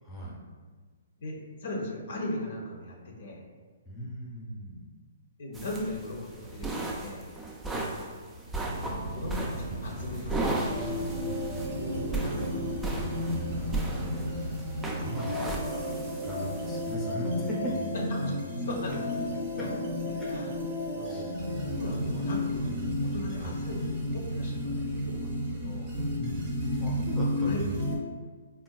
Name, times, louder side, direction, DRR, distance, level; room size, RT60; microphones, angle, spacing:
voice 1, 0.0-0.4 3.9-4.9 7.7-8.0 13.3-17.7 19.6-19.7 20.2-20.3 21.1-21.3 23.4-23.5 26.2-27.7, equal, 5° left, -6 dB, 0.7 m, -38 dB
voice 2, 1.2-3.4 5.4-7.3 8.8-11.1 11.7-13.1 18.2-19.2 19.5-19.7 20.1-20.5 20.9-21.2 21.7-25.9 27.4-27.8, left 1 dB, 65° left, -1 dB, 0.6 m, -39 dB
sound 1, 5.5-17.0, right 2 dB, 10° right, 0.3 m, -36 dB
sound 2, 8.6-14.9, right 1 dB, 75° right, 0.7 m, -37 dB
sound 3, 10.7-28.0, left 1 dB, 35° right, 0.7 m, -32 dB
3.6 x 2.3 x 2.2 m, 1.5 s
hypercardioid pair, 135°, 0 cm